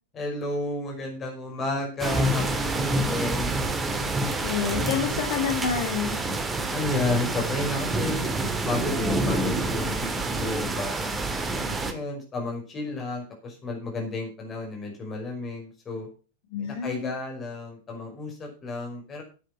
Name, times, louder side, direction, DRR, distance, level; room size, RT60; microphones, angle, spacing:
voice 1, 0.1-3.6 5.1-5.2 6.7-8.3 8.7-10.1 10.4-11.3 11.8-16.1 16.6-19.2, left 2 dB, 25° left, 2 dB, 5.4 m, -32 dB
sound 1, 2.0-11.9, right 2 dB, 15° right, 1.7 m, -27 dB
voice 2, 4.4-6.2 16.5-17.1, left 7 dB, 50° left, 3 dB, 2.1 m, -28 dB
10.0 x 9.1 x 5.9 m, 0.35 s
figure-of-eight pair, 90°, 0 cm